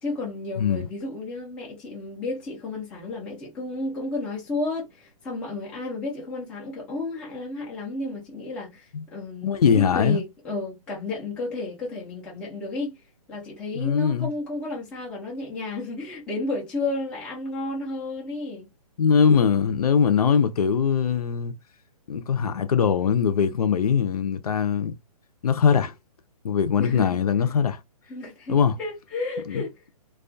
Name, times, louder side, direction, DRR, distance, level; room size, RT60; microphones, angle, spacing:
voice 1, 0.0-13.0 13.3-18.7 26.8-27.2 28.1-29.7, left 2 dB, 5° left, 0.4 m, -32 dB
voice 2, 9.4-10.2 13.7-14.3 19.0-21.5 22.1-24.9 25.4-25.9 26.4-27.8 28.5-28.8 29.5-29.6, left 7 dB, 75° left, 0.6 m, -21 dB
2.3 x 2.3 x 2.5 m
hypercardioid pair, 155°, 19 cm